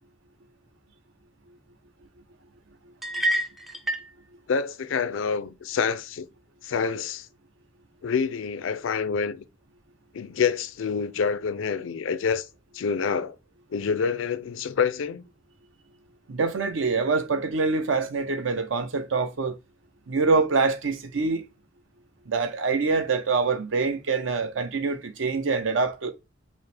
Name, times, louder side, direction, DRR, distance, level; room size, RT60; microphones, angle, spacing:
sound 1, 3.0-4.1, right 1 dB, ahead, 0.4 m, -27 dB
voice 1, 4.5-6.3 6.6-7.3 8.0-9.4 10.1-12.5 12.7-13.4 13.7-15.2, left 6 dB, 80° left, 0.4 m, -27 dB
voice 2, 16.3-19.5 20.1-21.4 22.3-26.1, right 4 dB, 75° right, 0.6 m, -25 dB
5.4 x 2.1 x 3.3 m
head